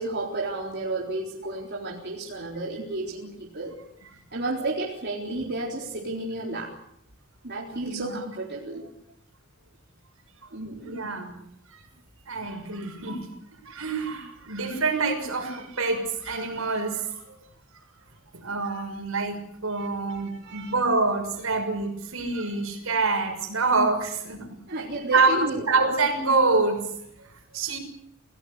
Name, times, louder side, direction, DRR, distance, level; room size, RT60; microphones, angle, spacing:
voice 1, 0.0-3.8 4.3-6.7 7.4-8.9 10.5-10.9 19.8-19.9 20.4-20.7 24.7-25.6, right 2 dB, 55° right, -2 dB, 4.0 m, -32 dB
voice 2, 7.7-8.1 10.7-11.3 11.7-11.8 12.3-13.3 13.6-17.4 17.7-17.8 18.3-24.6 25.1-26.9 27.2-27.3 27.5-27.8, right 3 dB, 75° right, 5 dB, 6.4 m, -26 dB
28.5 x 17.5 x 8.3 m, 0.74 s
head